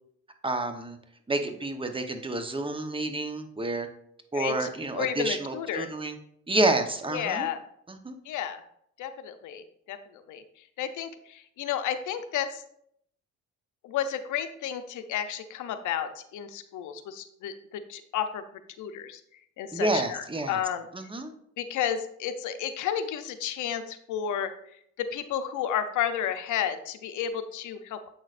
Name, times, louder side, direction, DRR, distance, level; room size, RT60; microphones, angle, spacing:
voice 1, 0.4-1.0 1.3-3.9 4.3-6.2 6.5-7.5 7.9-8.1 19.7-20.6 20.9-21.3, right 2 dB, 15° right, 6 dB, 0.9 m, -29 dB
voice 2, 4.3-4.7 4.9-5.9 7.1-7.6 8.3-8.6 9.0-10.4 10.8-12.6 13.8-18.4 18.8-19.2 19.6-20.9 21.6-24.5 25.0-28.1, left 9 dB, 80° left, 10 dB, 0.6 m, -32 dB
7.8 x 6.2 x 2.5 m, 0.70 s
cardioid pair, 90°, 30 cm